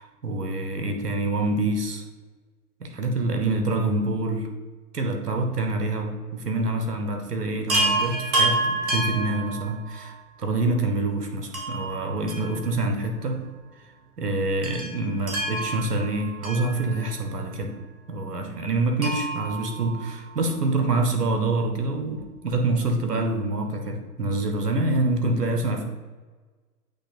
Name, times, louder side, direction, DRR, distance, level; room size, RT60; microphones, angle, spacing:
voice 1, 0.0-2.0 2.8-4.5 4.9-13.4 14.2-17.7 18.1-25.9, right 2 dB, 85° right, 4 dB, 1.3 m, -26 dB
Chime, 7.7-10.1 11.5-13.1 13.3-13.4 14.6-17.3 19.0-20.6 22.2-22.3 22.5-22.6, right 2 dB, 60° right, 2.0 m, -29 dB
8.2 x 3.4 x 4.3 m, 1.4 s
hypercardioid pair, 125°, 46 cm